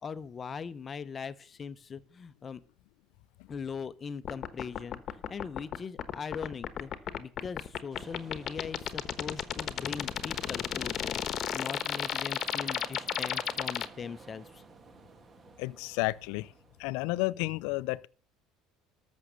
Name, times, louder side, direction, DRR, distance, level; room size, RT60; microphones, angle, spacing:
voice 1, 0.0-2.6 3.5-5.0 5.3-6.9 7.2-14.6, left 6 dB, 30° left, 0.8 m, -40 dB
sound 1, 4.2-13.9, left 9 dB, 45° left, 1.2 m, -32 dB
sound 2, 7.9-17.1, right 4 dB, 30° right, 1.6 m, -53 dB
voice 2, 15.6-16.5 16.8-18.1, left 21 dB, 75° left, 0.5 m, -31 dB
13.5 x 6.3 x 6.9 m
supercardioid pair, 100°, 0 cm